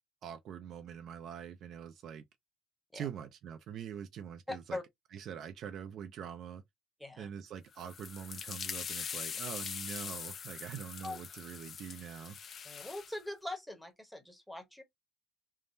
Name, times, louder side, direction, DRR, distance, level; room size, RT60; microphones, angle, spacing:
voice 1, 0.2-2.2 2.9-4.8 5.1-6.6 7.2-12.4, right 8 dB, 50° right, 0.4 m, -44 dB
voice 2, 4.5-4.8 7.0-7.3 11.0-11.2 12.6-14.8, left 2 dB, ahead, 0.9 m, -42 dB
sound 1, 7.7-13.2, left 7 dB, 35° left, 0.4 m, -42 dB
3.4 x 2.1 x 2.6 m
cardioid pair, 130°, 0 cm